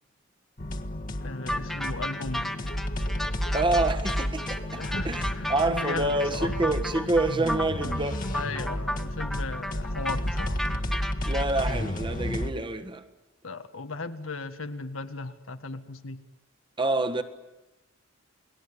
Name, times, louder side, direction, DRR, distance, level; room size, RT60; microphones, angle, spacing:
sound 1, 0.6-12.5, left 1 dB, 45° left, 1.6 m, -32 dB
voice 1, 1.2-2.6 4.8-6.7 8.3-10.7 13.4-16.2, left 3 dB, 85° left, 1.6 m, -37 dB
sound 2, 1.5-11.8, equal, ahead, 1.1 m, -34 dB
voice 2, 3.5-8.2 11.2-13.0 16.8-17.2, right 2 dB, 25° right, 1.5 m, -27 dB
29.0 x 19.5 x 9.9 m
head